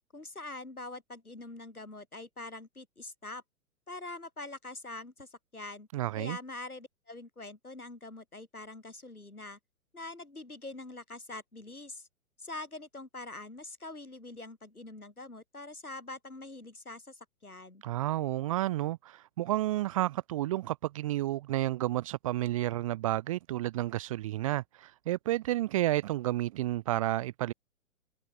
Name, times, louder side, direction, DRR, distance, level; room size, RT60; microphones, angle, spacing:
voice 1, 0.1-3.4 3.9-5.9 6.2-9.6 9.9-12.1 12.4-17.8, left 2 dB, 85° left, 6.8 m, -44 dB
voice 2, 5.9-6.4 17.8-27.5, right 15 dB, 25° right, 0.6 m, -31 dB
figure-of-eight pair, 120°, 43 cm